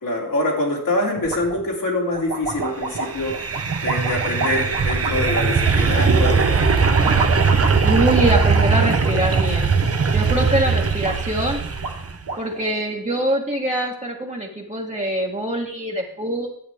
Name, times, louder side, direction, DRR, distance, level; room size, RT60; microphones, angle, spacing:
voice 1, 0.0-3.3 3.8-6.7, left 2 dB, 65° left, -2 dB, 2.9 m, -25 dB
sound 1, 1.2-1.7 2.1-6.4 6.8-10.1 10.4-11.2 11.5-11.6 11.8-12.6, right 4 dB, 80° right, 1.8 m, -30 dB
sound 2, 3.0-12.1, right 5 dB, 40° right, 0.8 m, -19 dB
voice 2, 7.8-9.7 10.1-11.6 12.4-16.5, right 1 dB, 20° right, -2 dB, 1.3 m, -24 dB
10.5 x 8.3 x 3.5 m, 0.66 s
wide cardioid pair, 100°, 35 cm